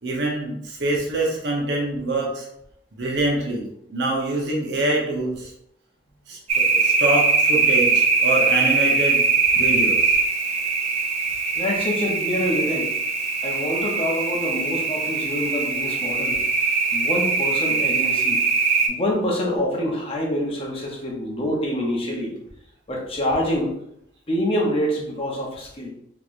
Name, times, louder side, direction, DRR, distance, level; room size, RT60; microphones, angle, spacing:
voice 1, 0.0-2.5 2.9-5.5 6.3-9.2 9.5-10.2, right 2 dB, 65° right, -1 dB, 0.9 m, -25 dB
Day Crickets, 6.5-18.9, right 4 dB, 35° right, 0.4 m, -21 dB
voice 2, 11.5-12.9 13.4-16.4 16.9-18.4 18.9-22.3 22.9-23.7 24.3-25.9, left 1 dB, 30° left, -1 dB, 0.7 m, -26 dB
3.6 x 3.0 x 2.5 m, 0.74 s
head